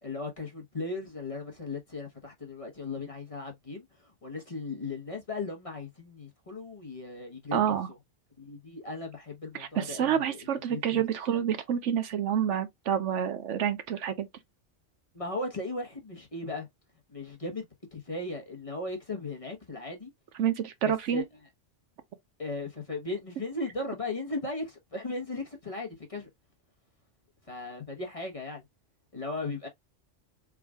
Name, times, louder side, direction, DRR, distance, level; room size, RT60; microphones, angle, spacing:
voice 1, 0.0-7.7 8.4-10.4 10.7-11.0 11.3-11.4 15.1-16.7 17.1-20.1 20.8-21.2 22.4-26.3 27.5-28.6 29.1-29.7, left 2 dB, 30° left, 1.1 m, -37 dB
voice 2, 7.5-7.9 9.6-14.3 20.4-21.2, right 9 dB, 75° right, 1.0 m, -28 dB
4.8 x 3.6 x 2.3 m
omnidirectional pair, 1.3 m